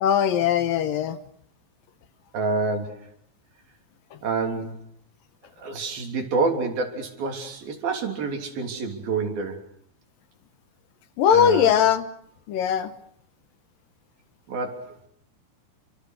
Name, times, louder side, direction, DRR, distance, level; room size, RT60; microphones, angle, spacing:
voice 1, 0.0-1.2 11.2-12.0 12.5-12.9, left 8 dB, 70° left, 11 dB, 2.8 m, -20 dB
voice 2, 2.3-3.1 4.2-4.9 5.6-9.6 11.3-11.7 14.5-15.0, right 4 dB, 70° right, 4 dB, 5.1 m, -28 dB
29.5 x 25.5 x 6.5 m, 0.66 s
omnidirectional pair, 4.4 m